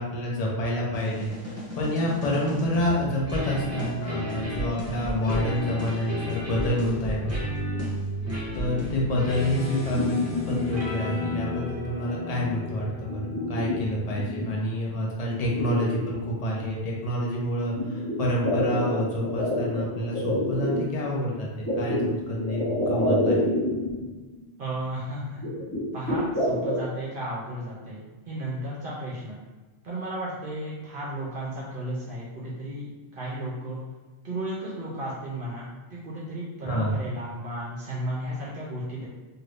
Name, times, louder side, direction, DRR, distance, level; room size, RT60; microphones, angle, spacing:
voice 1, 0.0-7.3 8.5-23.4 36.7-36.9, left 1 dB, 40° left, -3 dB, 0.7 m, -28 dB
sound 1, 0.9-14.4, left 1 dB, 15° right, 0.7 m, -33 dB
sound 2, 9.6-10.8 11.2-11.6 12.0-12.5 12.8-14.4 14.9-15.0 15.3-16.6 17.7-20.8 21.6-24.1 24.4-24.5 24.7-24.8 25.4-26.8, left 1 dB, 20° left, 1.0 m, -28 dB
voice 2, 24.6-25.4 25.9-29.4 29.8-32.9 33.2-33.8 34.2-39.1, right 1 dB, 60° right, -6 dB, 0.8 m, -34 dB
2.7 x 2.6 x 3.2 m, 1.3 s
omnidirectional pair, 1.1 m